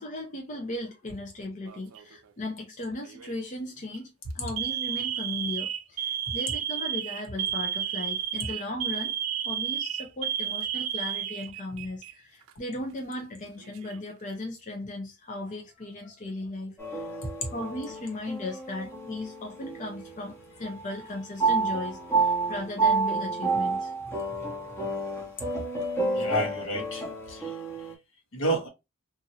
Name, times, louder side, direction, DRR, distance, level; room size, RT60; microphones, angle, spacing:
voice 1, 0.0-9.2 9.4-17.1 17.5-23.9, left 2 dB, 35° left, 0.6 m, -37 dB
Alarm, 1.7-2.2 3.0-3.3 3.8-4.0 4.6-12.1 12.4-12.5 13.4-14.1, right 10 dB, 75° right, 0.4 m, -32 dB
sound 1, 16.8-20.3 20.6-27.9, right 3 dB, 10° left, 1.1 m, -30 dB
voice 2, 26.1-27.5 28.3-28.7, right 1 dB, 65° left, 1.1 m, -30 dB
2.7 x 2.6 x 2.8 m
head